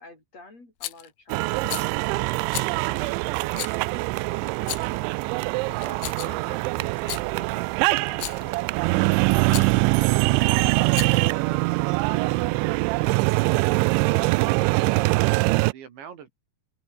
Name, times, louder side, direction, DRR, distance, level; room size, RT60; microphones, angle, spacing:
voice 1, 0.0-5.1 5.7-13.2, left 2 dB, 35° left, 7.8 m, -49 dB
Rattle, 0.8-1.1 1.6-1.9 2.5-2.7 3.5-3.8 4.6-5.0 5.8-6.5 6.9-7.3 8.1-8.5 9.5-9.7 10.8-11.3, left 17 dB, 85° left, 3.7 m, -34 dB
sound 1, 1.3-15.7, right 24 dB, 85° right, 2.7 m, -23 dB
voice 2, 14.4-16.3, right 8 dB, 70° right, 5.1 m, -43 dB
open air
omnidirectional pair, 5.6 m